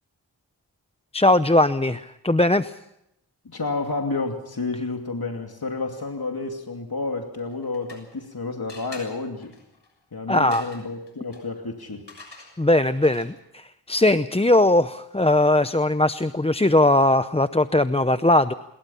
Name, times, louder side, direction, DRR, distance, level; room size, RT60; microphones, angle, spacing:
voice 1, 1.1-2.8 10.3-10.7 12.6-18.5, left 1 dB, 15° left, 11 dB, 0.7 m, -20 dB
voice 2, 3.4-9.5 10.1-12.0, left 3 dB, 55° left, 3 dB, 2.6 m, -30 dB
sound 1, 7.4-8.3 8.7-13.5, left 3 dB, 75° left, 6.9 m, -47 dB
27.0 x 21.5 x 5.6 m, 0.82 s
wide cardioid pair, 55°, 43 cm